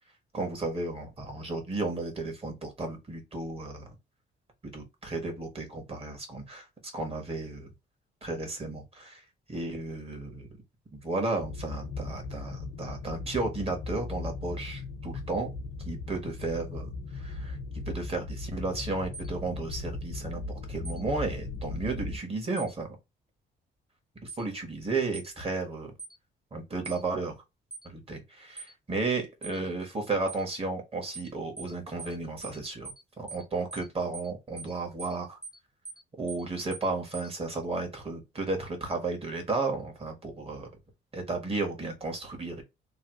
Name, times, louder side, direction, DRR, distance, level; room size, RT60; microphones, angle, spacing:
voice 1, 0.3-3.9 4.7-6.6 6.9-7.7 8.2-9.2 9.5-10.5 10.9-15.5 15.8-20.4 20.7-22.9 24.2-25.9 26.5-27.3 27.8-32.9 33.2-35.4 36.2-40.7 41.1-42.6, right 3 dB, 30° right, 1.4 m, -33 dB
sound 1, 11.4-22.2, left 3 dB, 85° left, 0.9 m, -38 dB
sound 2, 19.1-19.3 20.8-21.0 22.6-22.7 24.3-24.4 25.1-25.3 26.0-26.2 26.8-27.0 27.7-27.9 28.6-28.7 29.4-29.6 30.3-30.4 31.1-31.3 31.6-31.7 32.0-32.2 32.4-32.6 32.8-33.0 33.3-33.4 33.7-33.9 34.1-34.3 34.6-34.7 35.0-35.2 35.4-35.6 35.8-36.0 36.3-36.4 36.7-36.9 37.1-37.3, right 4 dB, 5° right, 0.4 m, -42 dB
3.1 x 2.3 x 3.0 m
cardioid pair, 90°, 20 cm